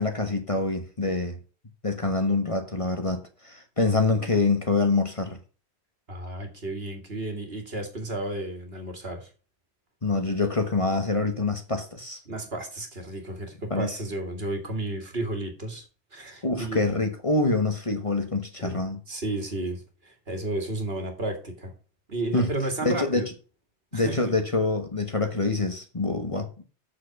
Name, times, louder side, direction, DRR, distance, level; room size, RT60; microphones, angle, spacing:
voice 1, 0.0-1.4 1.8-5.4 10.0-12.2 13.7-14.0 16.4-19.0 22.3-22.5 22.8-23.2 23.9-26.6, left 3 dB, 30° left, 1.4 m, -26 dB
voice 2, 6.1-9.3 12.3-15.8 16.1-16.8 18.6-18.8 19.1-21.7 22.1-23.3 23.9-24.3, right 2 dB, 60° right, 2.4 m, -32 dB
7.7 x 6.8 x 6.0 m
omnidirectional pair, 1.1 m